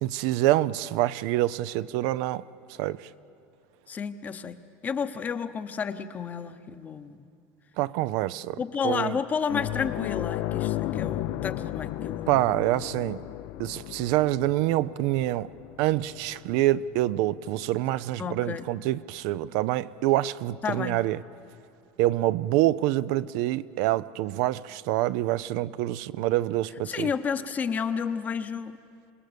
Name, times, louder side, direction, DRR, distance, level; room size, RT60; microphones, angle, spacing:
voice 1, 0.0-2.4 2.8-3.1 7.8-8.6 8.8-9.2 12.3-13.2 13.6-15.5 15.8-21.2 22.0-27.1, right 15 dB, 65° right, 16 dB, 0.5 m, -26 dB
voice 2, 3.9-4.6 4.8-7.2 8.6-12.3 18.2-18.7 20.6-21.0 26.9-28.8, left 6 dB, 25° left, 11 dB, 0.9 m, -31 dB
sound 1, 9.5-18.4 18.8-18.9 21.0-21.1, left 14 dB, 60° left, 0.6 m, -34 dB
27.0 x 19.5 x 6.9 m, 2.4 s
supercardioid pair, 130°, 6 cm